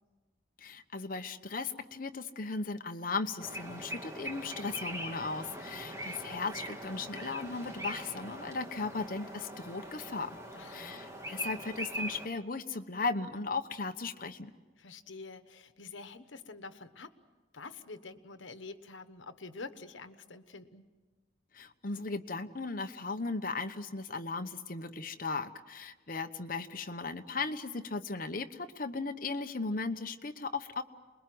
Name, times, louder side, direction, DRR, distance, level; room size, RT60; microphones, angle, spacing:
voice 1, 0.6-10.3 10.7-14.5 21.5-30.8, left 3 dB, 45° left, 7 dB, 1.1 m, -37 dB
sound 1, 3.4-12.3, right 1 dB, 15° right, 2.0 m, -42 dB
voice 2, 10.5-11.1 14.8-17.1 17.5-20.8, left 3 dB, 85° left, 10 dB, 1.2 m, -47 dB
28.0 x 21.5 x 7.9 m, 1.3 s
head